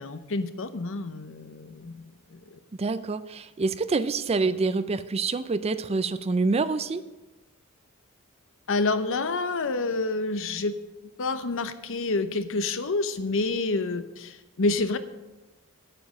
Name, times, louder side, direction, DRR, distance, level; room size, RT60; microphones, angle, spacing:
voice 1, 0.0-2.6 8.7-10.7 11.2-15.0, left 3 dB, 60° left, 11 dB, 0.8 m, -28 dB
voice 2, 2.8-7.0, right 3 dB, 30° right, 13 dB, 0.4 m, -26 dB
9.5 x 8.9 x 6.2 m, 1.1 s
head